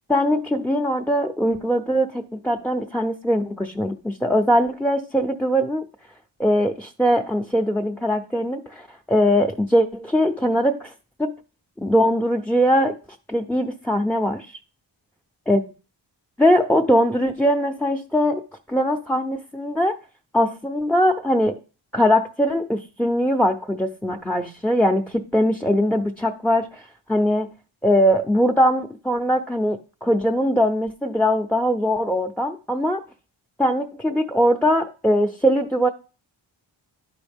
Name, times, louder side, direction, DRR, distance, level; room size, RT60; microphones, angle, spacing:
voice 1, 0.1-5.9 6.4-10.9 11.2-11.3 11.8-13.0 13.3-14.6 15.5-15.6 16.4-18.4 18.7-20.0 20.3-21.6 21.9-27.5 27.8-33.0 33.6-35.9, equal, 5° left, 3 dB, 0.6 m, -21 dB
11.5 x 4.9 x 3.5 m, 0.36 s
cardioid pair, 75°, 47 cm